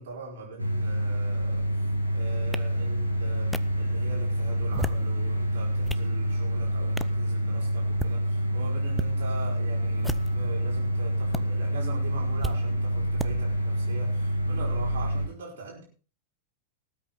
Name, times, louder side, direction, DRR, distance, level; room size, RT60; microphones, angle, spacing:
voice 1, 0.0-1.7 2.1-15.8, right 3 dB, 60° right, -4 dB, 5.0 m, -41 dB
sound 1, 0.6-15.3, equal, 85° right, 2.5 m, -27 dB
sound 2, 2.5-2.6 3.5-3.6 4.6-5.1 5.6-6.1 7.0-7.2 7.8-8.2 8.9-9.1 10.0-10.5 11.3-11.4 12.4-12.6 13.2-13.3, equal, ahead, 0.6 m, -34 dB
18.5 x 8.5 x 4.2 m, 0.38 s
figure-of-eight pair, 90°, 0 cm